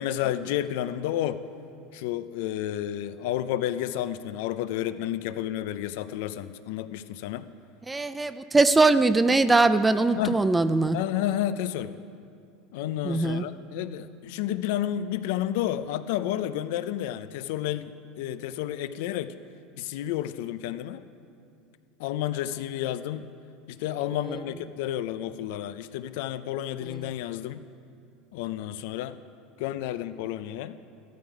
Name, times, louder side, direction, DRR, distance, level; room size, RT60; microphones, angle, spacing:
voice 1, 0.0-1.4 1.9-7.5 10.2-10.4 10.9-12.0 12.7-19.3 19.8-21.0 22.0-23.3 23.7-27.6 28.3-29.2 29.6-30.8, left 12 dB, 75° left, 13 dB, 0.5 m, -31 dB
voice 2, 7.9-11.0 13.0-13.4, right 3 dB, 10° right, 13 dB, 0.4 m, -21 dB
13.5 x 12.5 x 4.9 m, 2.4 s
supercardioid pair, 140°, 0 cm